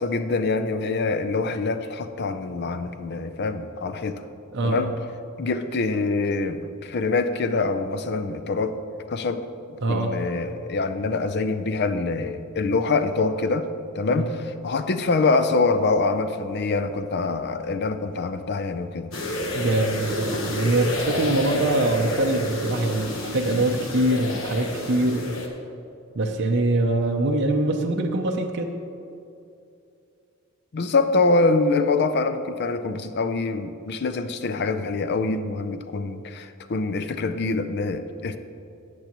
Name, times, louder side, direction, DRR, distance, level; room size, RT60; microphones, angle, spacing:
voice 1, 0.0-4.2 4.6-4.9 5.4-8.8 9.1-9.4 9.7-13.7 13.9-19.1 30.7-38.4, left 3 dB, 50° left, 10 dB, 0.5 m, -25 dB
voice 2, 4.5-4.9 9.8-10.1 14.1-14.2 19.5-25.3 26.1-28.8, right 2 dB, 55° right, 2 dB, 0.7 m, -23 dB
sound 1, 19.1-25.5, left 1 dB, 70° left, 1.2 m, -29 dB
13.5 x 8.2 x 3.0 m, 2.7 s
head